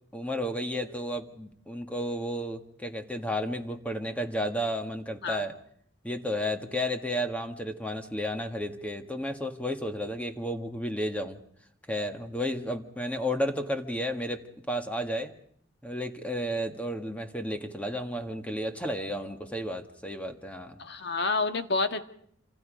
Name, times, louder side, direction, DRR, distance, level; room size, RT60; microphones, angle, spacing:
voice 1, 0.1-5.6 6.0-11.4 11.9-14.4 14.7-15.3 15.8-20.8, equal, 5° left, 5 dB, 1.8 m, -32 dB
voice 2, 20.8-22.0, left 3 dB, 60° left, 7 dB, 1.8 m, -28 dB
28.5 x 26.5 x 5.2 m, 0.65 s
head